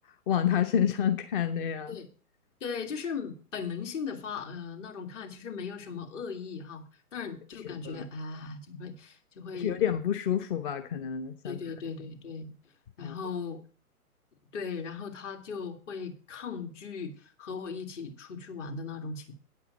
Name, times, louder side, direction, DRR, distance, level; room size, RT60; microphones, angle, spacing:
voice 1, 0.3-2.0 7.8-8.0 9.5-11.6 13.0-13.1, left 9 dB, 35° left, 9 dB, 0.8 m, -28 dB
voice 2, 2.6-6.8 7.1-9.8 11.4-12.5 13.0-13.6 14.5-19.3, left 5 dB, 50° left, 6 dB, 2.3 m, -38 dB
9.5 x 8.3 x 5.2 m, 0.39 s
hypercardioid pair, 130°, 45 cm